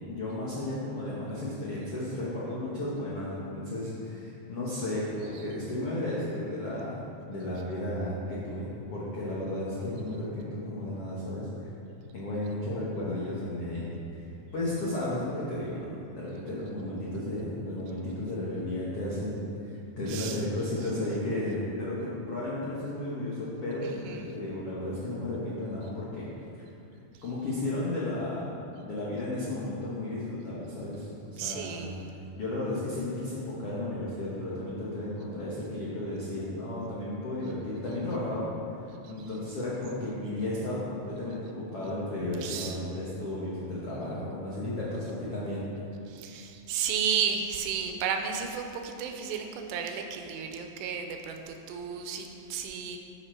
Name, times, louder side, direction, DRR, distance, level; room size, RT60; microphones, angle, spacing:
voice 1, 0.1-7.0 7.3-11.7 12.1-13.9 14.5-26.3 26.5-26.6 27.2-28.5 28.8-31.9 32.3-38.5 39.1-45.7, left 1 dB, 85° left, -7 dB, 1.3 m, -33 dB
voice 2, 20.1-20.7 23.8-24.4 31.4-32.1 39.0-39.1 42.4-42.8 45.0-45.1 46.1-53.0, right 7 dB, 90° right, 4 dB, 2.8 m, -33 dB
11.5 x 5.8 x 4.4 m, 2.6 s
omnidirectional pair, 4.9 m